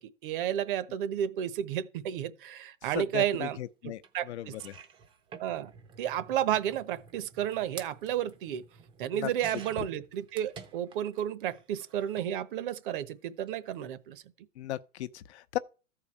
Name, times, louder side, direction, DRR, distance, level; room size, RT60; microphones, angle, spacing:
voice 1, 0.2-3.6 4.1-4.5 5.4-5.7 6.0-8.6 9.0-14.2, right 10 dB, 45° right, 1.0 m, -32 dB
voice 2, 2.9-4.0 4.3-4.8 9.1-9.3 14.6-15.6, left 13 dB, 60° left, 0.8 m, -36 dB
sound 1, 4.0-4.1 4.5-11.2 11.5-12.3 13.3-13.5 13.8-13.9, right 6 dB, 15° right, 0.7 m, -50 dB
13.5 x 4.8 x 8.5 m
supercardioid pair, 160°, 37 cm